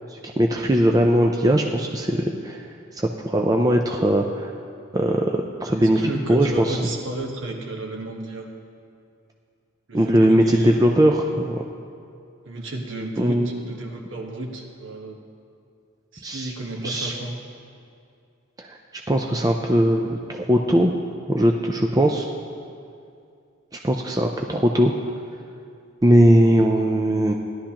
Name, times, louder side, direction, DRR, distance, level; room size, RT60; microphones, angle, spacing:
voice 1, 0.1-2.6 2.9-4.5 4.9-6.0 6.3-6.8 9.9-11.6 13.2-13.5 16.2-16.5 16.8-17.1 18.6-18.8 19.1-20.9 21.3-22.3 23.8-24.9 26.0-27.3, right 1 dB, 15° right, 2 dB, 0.4 m, -20 dB
voice 2, 5.7-8.5 9.9-11.2 12.4-15.2 16.1-17.4, right 2 dB, 60° right, 1 dB, 1.2 m, -32 dB
17.0 x 11.5 x 2.9 m, 2.4 s
head